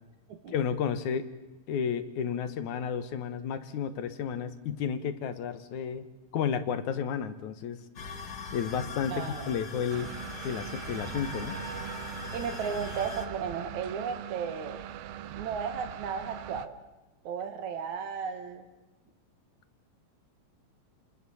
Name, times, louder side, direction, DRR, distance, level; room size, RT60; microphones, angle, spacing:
voice 1, 0.5-1.4 1.7-6.1 6.3-7.8 8.5-10.1 10.4-11.6, left 7 dB, 65° left, 12 dB, 2.4 m, -32 dB
sound 1, 8.0-13.3, left 3 dB, 45° left, 1.4 m, -41 dB
voice 2, 9.1-9.5 12.3-14.8 15.4-16.7 17.2-18.7, right 6 dB, 60° right, 6 dB, 2.7 m, -34 dB
sound 2, 9.9-16.7, right 11 dB, 80° right, 2.8 m, -41 dB
29.0 x 21.0 x 7.1 m, 1.1 s
omnidirectional pair, 4.1 m